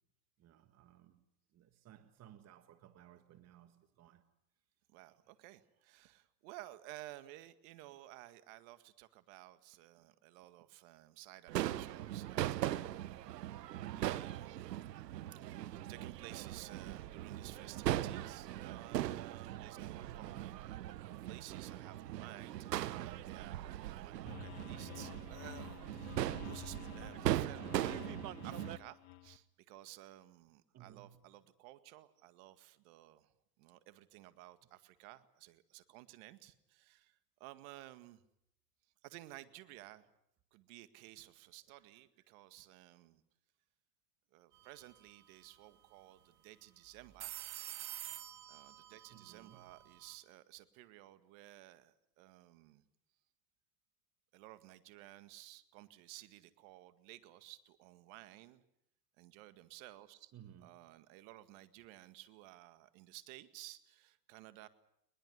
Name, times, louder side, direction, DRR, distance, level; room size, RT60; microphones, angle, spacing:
voice 1, 0.4-1.2 1.5-4.2 13.9-14.3 20.0-20.5 24.2-24.7 30.7-31.2 49.1-49.7 60.3-60.7, right 11 dB, 35° right, 1.7 m, -58 dB
voice 2, 4.9-13.0 13.2-14.7 15.3-15.4 15.9-28.1 28.4-38.2 39.0-40.1 40.5-43.2 44.3-47.4 48.5-52.9 54.3-58.6 59.2-60.3 60.6-64.7, right 17 dB, 55° right, 2.0 m, -55 dB
Crowd / Fireworks, 11.5-28.8, right 13 dB, 85° right, 1.0 m, -40 dB
sound 1, 24.3-29.4, left 16 dB, 50° left, 1.4 m, -51 dB
sound 2, 44.5-44.8 45.1-45.2 47.0-50.1, right 13 dB, 70° right, 2.2 m, -48 dB
21.5 x 21.0 x 9.6 m
hypercardioid pair, 110°, 47 cm